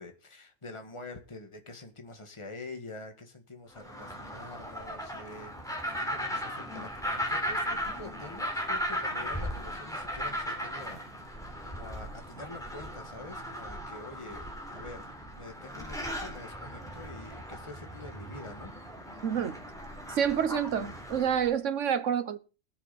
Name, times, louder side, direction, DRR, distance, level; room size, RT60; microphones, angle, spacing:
voice 1, 0.0-5.5 5.8-11.3 11.6-18.7, left 3 dB, 25° left, 1.8 m, -46 dB
sound 1, 3.8-21.5, equal, 5° left, 3.3 m, -37 dB
voice 2, 19.2-19.6 20.1-22.4, right 8 dB, 75° right, 1.3 m, -28 dB
20.5 x 7.0 x 4.2 m
omnidirectional pair, 1.3 m